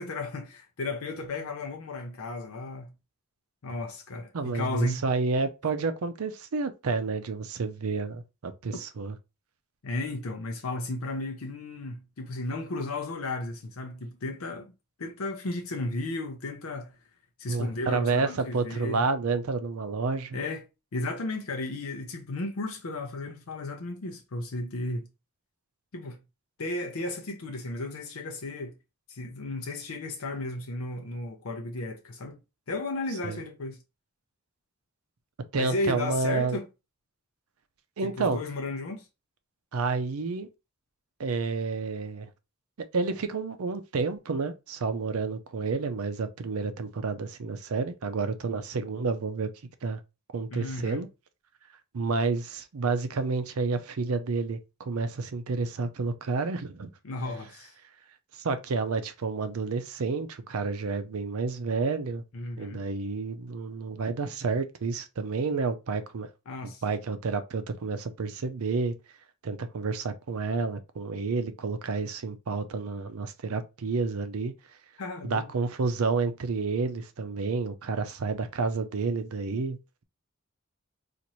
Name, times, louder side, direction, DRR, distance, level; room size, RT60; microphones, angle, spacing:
voice 1, 0.0-2.9 3.6-5.0 9.8-14.7 15.0-16.9 17.4-19.1 20.3-20.6 20.9-25.1 25.9-26.2 26.6-28.7 29.1-32.4 32.7-33.8 35.5-36.7 38.0-39.1 50.5-51.0 57.0-57.7 62.3-62.8 66.5-66.8 75.0-75.5, left 2 dB, 75° left, 0.6 m, -34 dB
voice 2, 4.3-9.2 17.5-20.4 33.2-33.4 35.5-36.6 38.0-38.4 39.7-40.5 41.2-42.3 42.9-49.5 49.8-50.0 50.3-51.1 51.9-56.9 58.4-62.2 62.6-66.3 66.8-68.9 69.4-74.5 75.2-80.0, right 4 dB, 85° right, 0.5 m, -30 dB
4.0 x 2.5 x 3.0 m
head